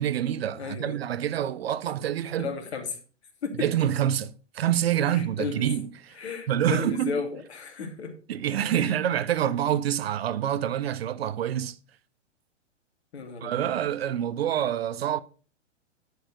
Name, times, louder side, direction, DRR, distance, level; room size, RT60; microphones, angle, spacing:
voice 1, 0.0-2.5 3.6-5.9 6.5-7.2 8.3-11.8 13.4-15.2, right 10 dB, 55° right, 0.6 m, -26 dB
voice 2, 0.6-1.0 2.4-3.0 3.4-3.7 5.1-5.7 6.2-8.1 8.8-8.9 13.1-13.8, left 5 dB, 60° left, 2.6 m, -34 dB
10.5 x 4.7 x 6.5 m
figure-of-eight pair, 110°, 36 cm